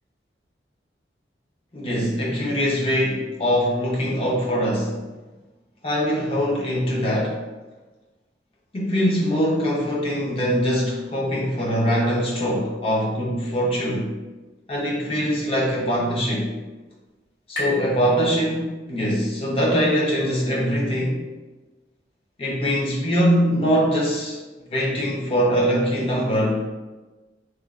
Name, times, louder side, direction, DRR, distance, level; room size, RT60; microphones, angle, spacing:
voice 1, 1.7-5.0 5.8-7.4 8.7-14.2 14.7-16.6 17.5-21.3 22.4-24.4 24.7-26.7, equal, 30° left, -3 dB, 0.5 m, -22 dB
sound 1, 15.2-19.0, equal, 65° left, 0.7 m, -38 dB
3.0 x 2.2 x 2.3 m, 1.2 s
head